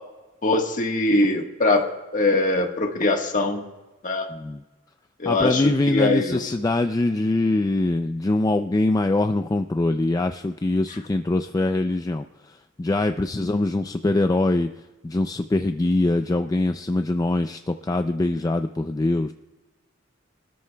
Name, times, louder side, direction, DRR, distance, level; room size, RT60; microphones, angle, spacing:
voice 1, 0.4-3.6 4.0-4.3 5.2-6.5 13.3-13.5, left 2 dB, 40° left, 2 dB, 1.4 m, -22 dB
voice 2, 4.3-4.6 5.2-14.7 15.0-19.3, left 2 dB, 20° left, 8 dB, 0.3 m, -23 dB
22.0 x 13.0 x 2.2 m, 1.2 s
head